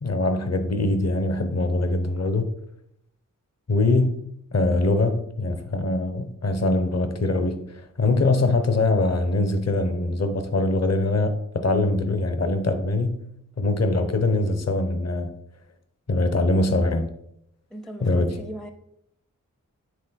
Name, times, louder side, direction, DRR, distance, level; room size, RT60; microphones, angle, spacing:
voice 1, 0.0-2.5 3.7-4.2 4.5-13.2 13.6-15.3 16.1-17.1 18.0-18.3, left 2 dB, 50° left, 0.8 m, -23 dB
voice 2, 17.7-18.7, equal, ahead, 0.4 m, -38 dB
9.4 x 3.8 x 4.1 m
wide cardioid pair, 75°, 33 cm